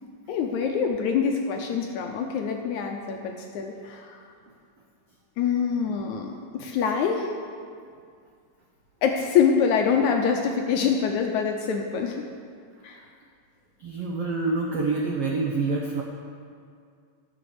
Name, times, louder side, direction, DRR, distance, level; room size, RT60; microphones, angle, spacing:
voice 1, 0.3-4.2 5.4-7.4 9.0-12.3 12.8-13.0, left 6 dB, 75° left, 3 dB, 1.8 m, -25 dB
voice 2, 13.8-16.0, right 3 dB, 75° right, -1 dB, 1.3 m, -27 dB
13.0 x 7.1 x 6.8 m, 2.2 s
omnidirectional pair, 4.0 m